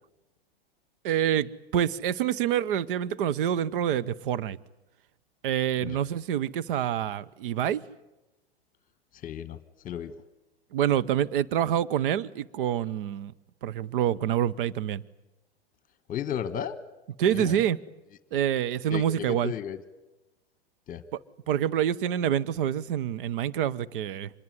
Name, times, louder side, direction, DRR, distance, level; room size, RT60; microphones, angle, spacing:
voice 1, 1.0-4.6 5.4-7.8 10.7-13.3 13.6-15.0 17.2-17.8 18.3-19.5 21.1-21.2 21.5-24.3, right 10 dB, 55° right, 17 dB, 1.0 m, -27 dB
voice 2, 9.2-9.6 9.8-10.1 16.1-16.8 17.3-17.6 18.9-19.8 20.9-21.0, left 9 dB, 25° left, 14 dB, 1.4 m, -33 dB
26.0 x 21.5 x 9.5 m, 1.0 s
hypercardioid pair, 110°, 31 cm